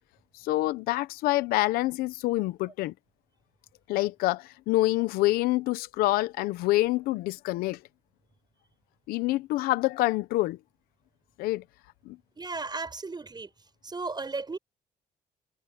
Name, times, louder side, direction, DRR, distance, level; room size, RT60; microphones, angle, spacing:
voice 1, 0.4-2.9 3.9-7.8 9.1-10.6 11.4-11.6 12.0-12.2, left 18 dB, 90° left, 0.8 m, -26 dB
voice 2, 12.4-13.5 13.8-14.6, right 3 dB, 30° right, 7.2 m, -35 dB
supercardioid pair, 70°, 15 cm